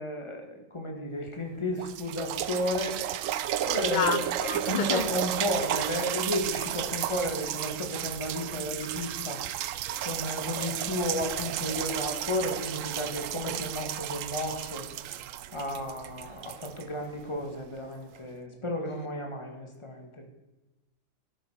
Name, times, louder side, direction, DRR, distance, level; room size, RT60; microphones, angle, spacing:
voice 1, 0.0-3.0 3.5-4.2 4.5-9.4 10.0-14.8 15.5-20.2, left 1 dB, 20° left, 2.0 m, -33 dB
sound 1, 1.3-1.4 1.8-17.5 18.2-18.3, right 12 dB, 90° right, 1.0 m, -33 dB
voice 2, 3.7-5.1, left 6 dB, 45° left, 0.7 m, -30 dB
13.5 x 8.0 x 6.5 m
omnidirectional pair, 1.3 m